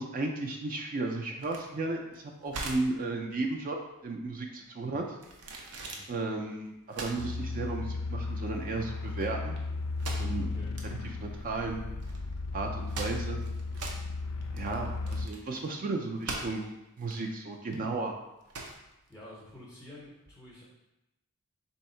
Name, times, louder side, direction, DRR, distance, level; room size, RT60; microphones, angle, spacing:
voice 1, 0.0-3.8 4.0-5.0 5.6-5.8 6.1-9.6 10.0-10.5 10.8-11.8 12.5-13.4 14.5-16.7 17.0-18.1, right 3 dB, 40° right, 2 dB, 0.4 m, -34 dB
sound 1, 1.4-19.9, right 2 dB, 90° right, 0.7 m, -43 dB
sound 2, 7.2-15.3, left 3 dB, 75° left, 0.3 m, -35 dB
voice 2, 19.1-20.7, left 1 dB, 15° left, -5 dB, 0.7 m, -50 dB
3.5 x 2.7 x 4.3 m, 0.91 s
head